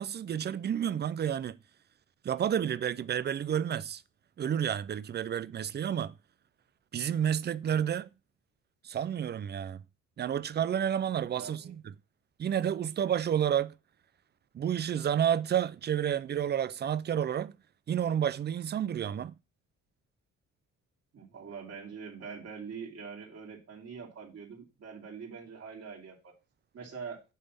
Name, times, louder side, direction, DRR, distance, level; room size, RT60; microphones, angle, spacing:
voice 1, 0.0-1.6 2.2-4.0 4.4-6.1 6.9-8.1 8.8-9.8 10.2-11.8 12.4-13.7 14.5-17.5 17.9-19.4, right 9 dB, 35° right, 0.4 m, -30 dB
voice 2, 11.3-11.7 21.1-26.3 26.7-27.2, right 6 dB, 55° right, 2.8 m, -44 dB
8.3 x 3.4 x 5.6 m
cardioid pair, 90°, 30 cm